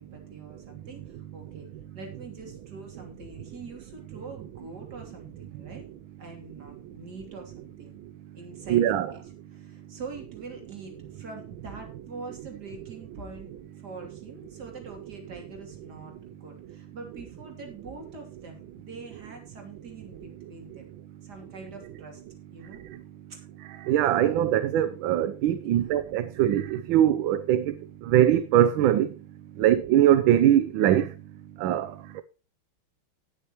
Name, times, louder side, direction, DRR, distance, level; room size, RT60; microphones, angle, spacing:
voice 1, 0.0-1.7 1.9-5.8 6.2-8.0 8.3-13.5 13.8-16.1 16.4-20.8 21.2-22.2 22.5-22.8 23.3-23.4 25.6-26.0 29.5-29.8, right 3 dB, 50° right, 3.4 m, -44 dB
voice 2, 8.7-9.1 23.9-27.6 28.1-29.1 29.6-31.1 31.6-31.9, right 11 dB, 75° right, 1.4 m, -21 dB
18.0 x 6.6 x 3.0 m
omnidirectional pair, 2.3 m